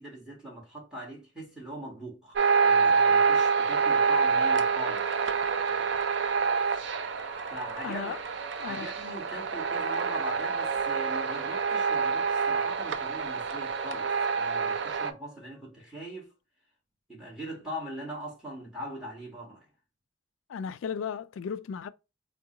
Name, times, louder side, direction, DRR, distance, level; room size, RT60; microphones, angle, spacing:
voice 1, 0.0-2.4 2.6-5.1 7.5-8.1 8.6-16.3 17.1-19.7, equal, 5° right, 1.6 m, -41 dB
sound 1, 2.4-15.1, right 5 dB, 65° right, 0.4 m, -27 dB
sound 2, 6.8-15.7, right 4 dB, 25° right, 0.6 m, -48 dB
voice 2, 7.8-8.2 8.6-8.9 20.5-21.9, left 6 dB, 85° left, 0.3 m, -35 dB
3.8 x 2.2 x 3.8 m
head